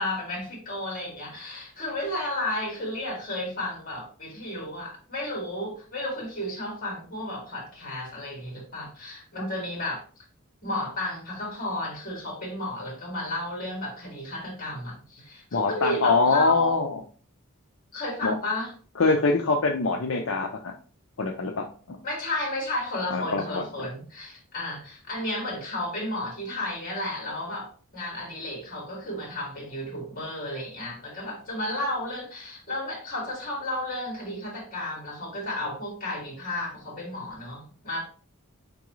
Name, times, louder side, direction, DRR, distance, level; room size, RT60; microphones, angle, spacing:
voice 1, 0.0-10.0 10.6-16.8 17.9-18.7 22.0-38.0, left 1 dB, 40° left, 2.1 m, -33 dB
voice 2, 15.5-17.0 18.2-18.3 19.0-20.7 21.2-22.0 23.1-23.6, left 3 dB, 65° left, 0.5 m, -24 dB
4.6 x 3.7 x 3.0 m
head